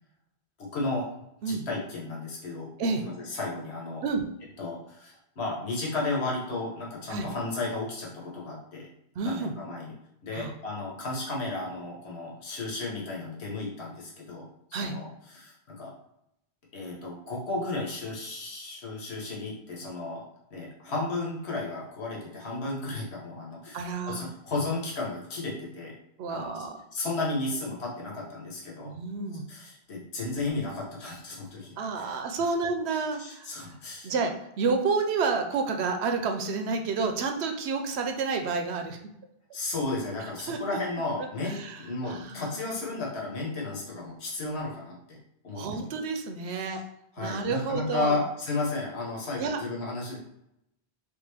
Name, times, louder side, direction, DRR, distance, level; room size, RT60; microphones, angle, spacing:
voice 1, 0.6-1.1 1.5-2.7 3.0-4.0 4.6-8.9 9.2-9.9 10.2-14.4 14.8-15.1 15.3-15.9 16.7-20.2 20.5-25.9 26.3-26.6 26.9-28.9 29.5-31.7 32.0-32.2 33.2-34.1 39.5-45.2 45.4-45.9 46.7-46.8 47.2-50.2, left 2 dB, 85° left, -3 dB, 1.3 m, -33 dB
voice 2, 9.2-9.5 10.3-10.5 14.7-15.0 23.7-24.3 26.2-26.8 28.8-29.5 31.8-33.7 34.0-39.0 40.2-40.6 41.4-42.7 45.6-46.8 47.2-48.2 49.4-49.6, right 4 dB, 90° right, 5 dB, 0.9 m, -30 dB
3.6 x 3.6 x 3.4 m, 0.80 s
omnidirectional pair, 1.1 m